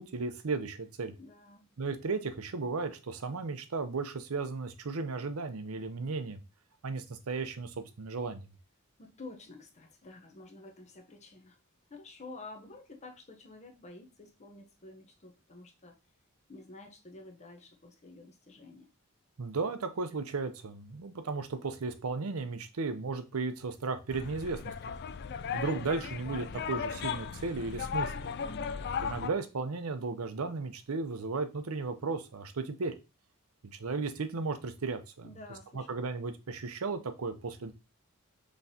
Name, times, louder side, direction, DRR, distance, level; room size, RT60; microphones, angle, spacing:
voice 1, 0.0-1.1 1.8-6.4 6.8-8.5 19.4-24.7 25.5-28.3 29.0-32.9 33.8-35.3 35.7-37.7, right 4 dB, 90° right, 0.7 m, -35 dB
voice 2, 1.2-1.7 9.0-11.6 11.9-16.0 16.5-18.9 28.4-28.9 35.2-36.0, left 2 dB, 35° left, 0.8 m, -50 dB
sound 1, 24.1-29.3, left 6 dB, 50° left, 0.3 m, -36 dB
5.7 x 3.2 x 2.7 m
head